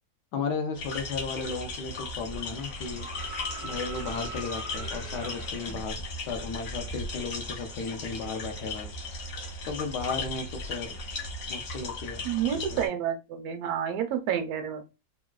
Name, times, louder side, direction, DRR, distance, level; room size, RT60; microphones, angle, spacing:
voice 1, 0.3-3.1 3.6-8.9 9.7-10.9 11.5-12.2 12.5-12.9, left 4 dB, 80° left, 5 dB, 1.3 m, -35 dB
sound 1, 0.7-12.9, left 2 dB, 60° left, 1.1 m, -37 dB
sound 2, 2.5-5.7 7.5-7.6, right 1 dB, 35° left, 0.5 m, -41 dB
voice 2, 12.2-14.9, right 9 dB, 70° right, 6 dB, 1.0 m, -30 dB
3.5 x 2.2 x 2.3 m, 0.27 s
omnidirectional pair, 1.8 m